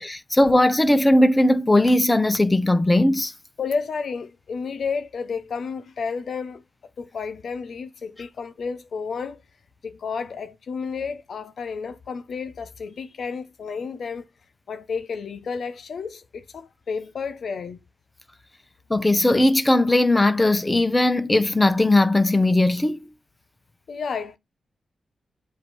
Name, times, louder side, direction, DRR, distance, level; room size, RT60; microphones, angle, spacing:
voice 1, 0.0-3.3 18.9-23.0, left 1 dB, 15° left, 0.6 m, -18 dB
voice 2, 3.6-6.6 7.0-9.4 9.8-14.3 14.7-17.8 23.9-24.4, left 5 dB, 65° left, 0.8 m, -31 dB
8.0 x 2.7 x 4.6 m
cardioid pair, 100°, 0 cm